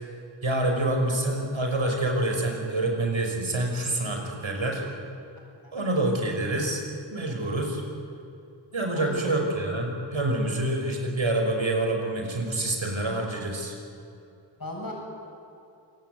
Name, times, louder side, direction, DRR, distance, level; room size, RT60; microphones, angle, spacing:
voice 1, 0.4-4.8 5.7-6.8 7.1-7.8 8.7-13.7, right 2 dB, 75° right, 2 dB, 5.6 m, -27 dB
voice 2, 5.4-5.7 8.9-9.5 14.6-14.9, left 2 dB, 45° left, -1 dB, 7.9 m, -39 dB
27.5 x 19.5 x 9.4 m, 2.6 s
wide cardioid pair, 65°, 48 cm